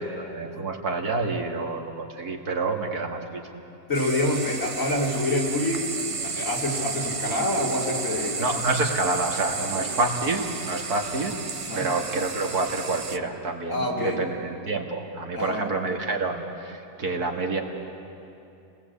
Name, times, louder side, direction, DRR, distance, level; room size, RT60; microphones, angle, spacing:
voice 1, 0.0-3.6 8.4-11.3 11.7-17.6, right 3 dB, 70° right, 2 dB, 2.4 m, -28 dB
voice 2, 3.9-8.5 9.5-9.8 11.6-11.9 13.7-14.2 15.3-15.6, left 1 dB, 50° left, -2 dB, 3.7 m, -27 dB
sound 1, 3.9-13.2, right 4 dB, 50° right, 0.4 m, -33 dB
29.0 x 20.0 x 8.5 m, 2.8 s
omnidirectional pair, 1.7 m